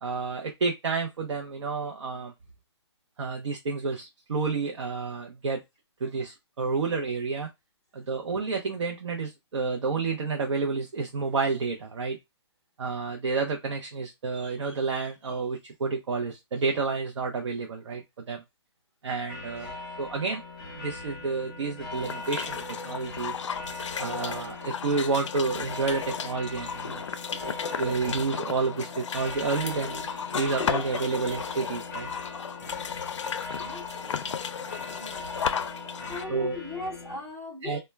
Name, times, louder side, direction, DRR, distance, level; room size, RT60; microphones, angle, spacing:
voice 1, 0.0-2.3 3.2-5.6 6.0-7.5 7.9-12.2 12.8-18.4 19.0-20.4 20.8-23.3 24.0-27.1 27.4-32.1 36.3-36.6 37.6-37.8, right 4 dB, 75° right, 2 dB, 0.6 m, -30 dB
sound 1, 19.3-37.2, left 2 dB, 20° left, 0.9 m, -41 dB
sound 2, 21.9-36.2, left 7 dB, 85° left, 0.4 m, -34 dB
voice 2, 33.6-34.2 34.6-35.2 36.1-37.8, left 1 dB, 10° right, -3 dB, 0.6 m, -39 dB
2.2 x 2.1 x 3.1 m, 0.20 s
hypercardioid pair, 175°, 15 cm